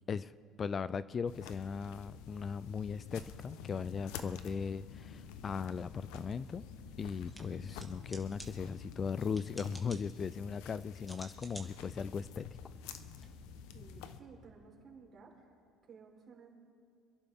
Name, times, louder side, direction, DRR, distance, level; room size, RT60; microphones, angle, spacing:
voice 1, 0.1-6.6 7.0-12.4, left 6 dB, 35° left, 17 dB, 0.4 m, -38 dB
sound 1, 1.3-14.2, left 7 dB, 80° left, 1.0 m, -49 dB
sound 2, 7.2-13.3, right 1 dB, 5° left, 2.1 m, -55 dB
voice 2, 13.7-15.6 15.9-16.5, right 5 dB, 40° right, 0 dB, 3.9 m, -55 dB
27.0 x 11.0 x 3.6 m, 2.6 s
supercardioid pair, 105°, 0 cm